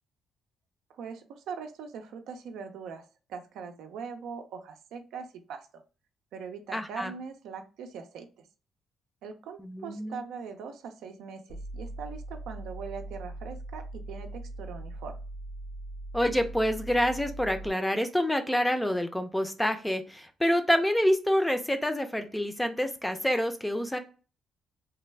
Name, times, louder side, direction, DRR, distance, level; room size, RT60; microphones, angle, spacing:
voice 1, 0.9-5.8 6.3-8.4 9.2-15.2, right 6 dB, 85° right, 6 dB, 0.5 m, -41 dB
voice 2, 6.7-7.1 9.6-10.2 16.1-24.0, equal, 10° left, 8 dB, 0.5 m, -27 dB
sound 1, 11.5-17.7, right 1 dB, 90° left, 1.1 m, -40 dB
3.3 x 2.2 x 3.2 m, 0.35 s
cardioid pair, 90°, 0 cm